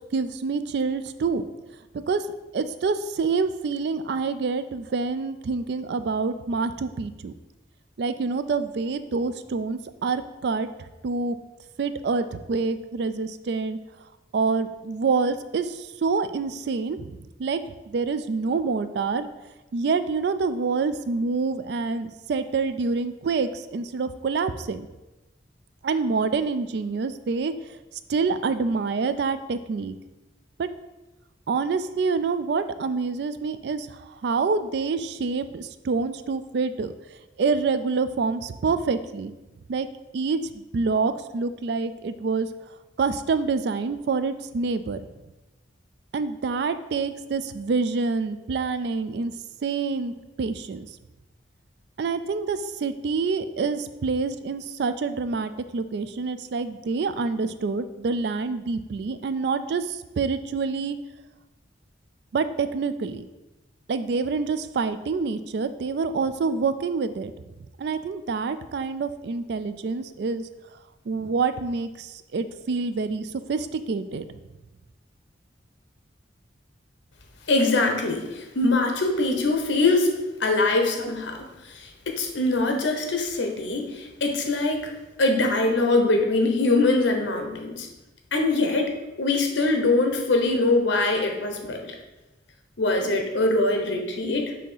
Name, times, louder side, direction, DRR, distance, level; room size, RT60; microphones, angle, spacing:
voice 1, 0.1-1.4 2.1-2.3 2.5-7.3 8.0-10.7 11.0-11.4 11.8-13.8 14.3-17.6 17.9-19.3 19.7-24.9 25.8-27.5 28.1-30.0 30.6-30.7 31.5-36.9 37.4-39.3 39.7-39.9 40.1-40.4 40.7-42.5 43.0-45.0 46.1-49.3 49.6-50.9 52.0-61.0 62.3-63.3 63.9-67.3 67.8-70.5 71.1-74.4, right 4 dB, 60° right, 11 dB, 0.3 m, -27 dB
voice 2, 77.5-80.1 80.4-81.4 81.7-84.9 85.2-87.9 88.3-88.9 89.2-91.9 92.8-94.5, left 2 dB, 75° left, 3 dB, 0.9 m, -23 dB
6.2 x 2.8 x 5.5 m, 1.1 s
head